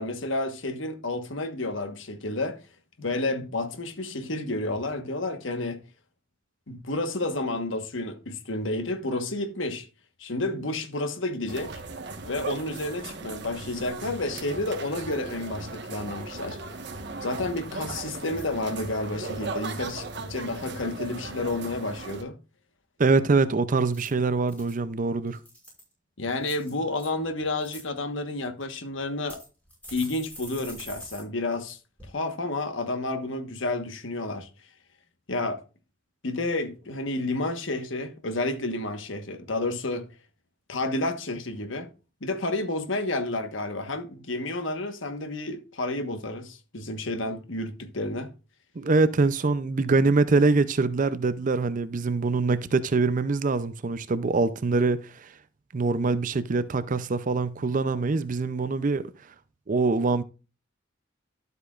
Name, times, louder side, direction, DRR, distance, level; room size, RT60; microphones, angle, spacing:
voice 1, 0.0-2.6 3.0-5.8 6.7-9.9 10.2-11.8 12.3-16.6 17.2-22.4 26.2-29.4 29.9-31.8 32.1-34.5 35.3-35.6 36.2-40.1 40.7-41.9 42.2-48.3, left 2 dB, 75° left, 1.3 m, -30 dB
sound 1, 11.5-22.2, right 3 dB, 60° right, 1.4 m, -37 dB
sound 2, 17.1-17.4 17.9-18.5 18.9-19.3 23.8-24.8 25.3-25.9 26.4-27.1 27.5-27.8 28.6-28.7 29.3-31.2 31.5-31.6 32.0-32.1, equal, 10° left, 5.6 m, -45 dB
voice 2, 23.0-25.4 48.8-55.3 55.7-59.1 59.7-60.2, right 3 dB, 45° right, 0.5 m, -24 dB
12.0 x 8.1 x 2.4 m
head